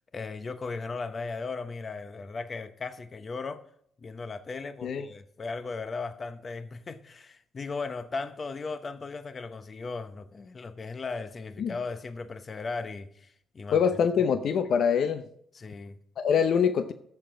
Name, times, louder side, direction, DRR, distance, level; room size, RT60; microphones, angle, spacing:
voice 1, 0.1-3.6 4.0-13.8 15.5-16.0, left 4 dB, 40° left, 0.8 m, -37 dB
voice 2, 13.7-15.2 16.2-16.9, left 7 dB, 65° left, 0.6 m, -24 dB
15.5 x 6.9 x 3.8 m
cardioid pair, 95°, 0 cm